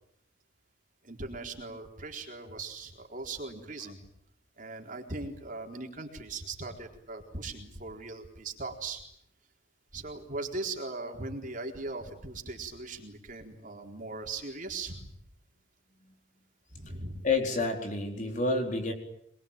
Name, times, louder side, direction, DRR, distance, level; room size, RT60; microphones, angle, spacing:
voice 1, 1.0-4.0 4.6-9.0 9.9-15.0 16.7-17.3, right 3 dB, 45° right, 2 dB, 4.1 m, -39 dB
voice 2, 17.2-18.9, left 3 dB, 40° left, 3 dB, 4.3 m, -29 dB
25.0 x 22.0 x 9.0 m, 0.73 s
head